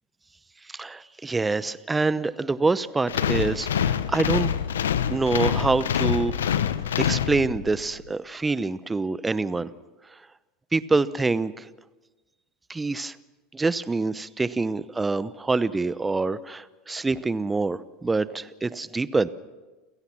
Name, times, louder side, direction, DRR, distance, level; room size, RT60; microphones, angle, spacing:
voice 1, 0.7-4.5 5.1-6.6 7.0-9.7 10.7-11.7 12.7-13.1 13.5-19.3, right 3 dB, 15° right, 17 dB, 0.9 m, -26 dB
sound 1, 3.1-7.8, left 8 dB, 80° left, 0.9 m, -25 dB
29.5 x 17.0 x 5.9 m, 1.2 s
hypercardioid pair, 80°, 0 cm